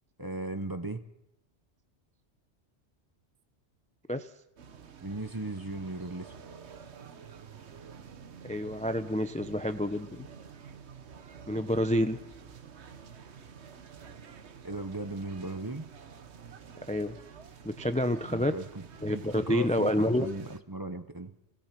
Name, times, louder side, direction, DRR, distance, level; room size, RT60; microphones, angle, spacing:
voice 1, 0.2-1.0 5.0-6.3 11.5-11.6 14.6-15.9 18.3-21.3, right 2 dB, 20° right, 9 dB, 0.9 m, -37 dB
sound 1, 4.6-20.6, right 6 dB, 70° right, 1.3 m, -49 dB
voice 2, 8.4-10.3 11.5-12.2 16.9-17.2 17.6-18.5 19.0-20.3, left 1 dB, 10° left, 9 dB, 0.6 m, -28 dB
27.5 x 18.0 x 6.0 m, 0.85 s
omnidirectional pair, 1.2 m